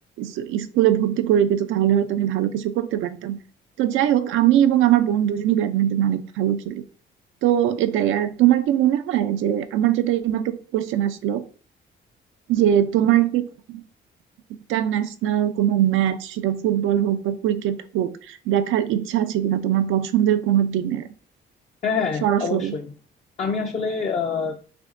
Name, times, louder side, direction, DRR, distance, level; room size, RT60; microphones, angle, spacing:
voice 1, 0.2-3.4 3.8-6.8 7.4-11.4 12.5-13.8 14.7-21.1 22.2-22.7, right 11 dB, 90° right, 9 dB, 0.5 m, -21 dB
voice 2, 21.8-22.9 23.4-24.8, left 5 dB, 35° left, 3 dB, 0.5 m, -26 dB
6.8 x 2.8 x 2.5 m, 0.42 s
cardioid pair, 90°, 20 cm